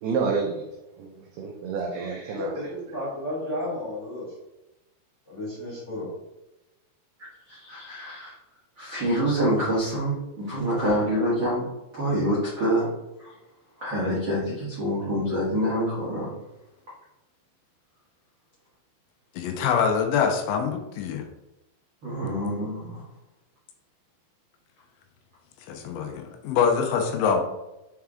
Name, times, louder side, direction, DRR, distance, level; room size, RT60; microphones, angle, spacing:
voice 1, 0.0-0.6 1.0-2.7, right 5 dB, 85° right, 1 dB, 2.2 m, -29 dB
voice 2, 2.3-4.3 5.2-6.1, left 1 dB, 25° left, -8 dB, 1.6 m, -33 dB
voice 3, 7.2-8.3 8.8-11.6 11.9-12.9 13.2-13.3 13.8-16.3 22.0-23.0, equal, 65° right, -9 dB, 1.1 m, -26 dB
voice 4, 19.4-21.2 25.7-27.4, left 6 dB, 80° left, 3 dB, 3.0 m, -24 dB
7.3 x 4.6 x 3.6 m, 0.98 s
omnidirectional pair, 5.5 m